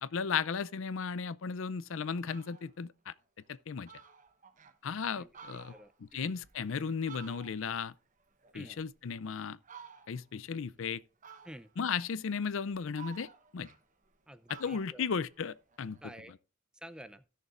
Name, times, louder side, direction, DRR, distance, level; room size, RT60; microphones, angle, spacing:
voice 1, 0.0-3.1 3.7-3.9 4.8-5.7 6.1-7.9 8.5-9.6 10.1-11.0 11.8-13.3 13.5-13.7 14.5-16.0, left 6 dB, 65° left, 0.5 m, -35 dB
Fowl, 1.6-1.7 2.1-2.7 3.2-3.3 3.5-3.6 3.9-4.8 5.2-7.8 8.2-9.2 9.6-10.3 11.2-11.9 12.4-14.2 14.5-16.1, right 7 dB, 35° right, 1.0 m, -54 dB
voice 2, 5.7-6.3 8.5-8.8 11.4-11.7 14.3-15.1 16.0-16.3 16.7-17.2, equal, 5° right, 0.5 m, -50 dB
16.5 x 6.6 x 2.5 m
head